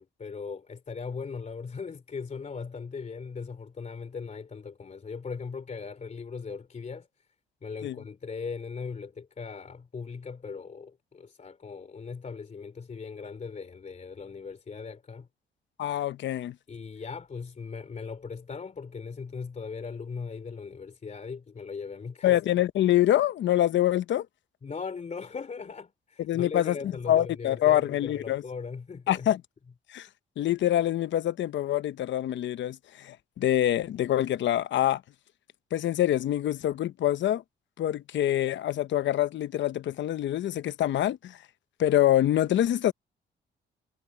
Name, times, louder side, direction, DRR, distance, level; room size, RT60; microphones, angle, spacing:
voice 1, 0.0-7.1 7.6-15.3 16.7-22.4 24.6-29.3, left 5 dB, 35° left, 2.8 m, -39 dB
voice 2, 15.8-16.5 22.2-24.3 26.3-28.4 29.1-29.4 29.9-30.1 30.4-35.0 35.7-37.4 37.8-41.4 41.8-42.9, left 12 dB, 70° left, 0.9 m, -25 dB
cardioid pair, 90°, 20 cm